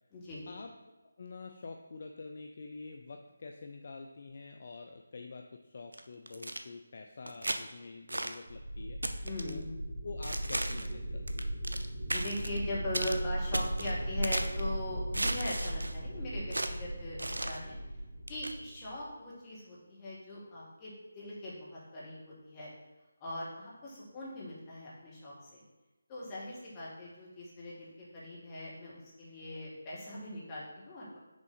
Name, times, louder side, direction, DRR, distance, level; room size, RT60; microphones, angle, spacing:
voice 1, 0.1-0.5 9.2-9.8 12.1-17.8 18.3-22.7 23.2-25.6 26.1-31.2, left 1 dB, 20° left, -6 dB, 1.6 m, -41 dB
voice 2, 1.2-9.0 9.4-9.6 10.0-11.5, left 4 dB, 45° left, 4 dB, 0.4 m, -46 dB
sound 1, 5.9-6.6 7.3-7.6 8.1-8.4 9.0-9.6 10.2-10.9 11.3-11.9 12.1-12.6 12.9-13.2 13.5-14.6 15.1-16.0 16.5-16.7 17.2-17.6 18.3-18.5, right 1 dB, 70° right, 0.5 m, -35 dB
sound 2, 8.5-19.1, right 1 dB, 35° right, 1.8 m, -37 dB
6.3 x 3.7 x 4.0 m, 1.1 s
figure-of-eight pair, 155°, 0 cm